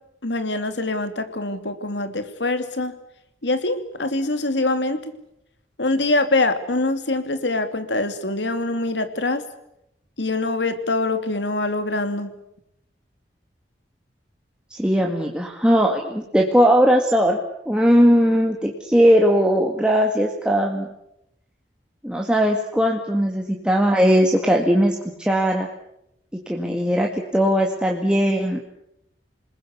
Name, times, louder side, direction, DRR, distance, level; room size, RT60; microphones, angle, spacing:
voice 1, 0.2-2.9 3.4-5.1 5.8-9.4 10.2-12.3, left 2 dB, 80° left, 9 dB, 2.6 m, -24 dB
voice 2, 14.7-17.4 17.7-20.9 22.0-25.7 26.5-28.6, equal, 5° right, 1 dB, 2.0 m, -19 dB
28.0 x 20.5 x 8.3 m, 0.82 s
head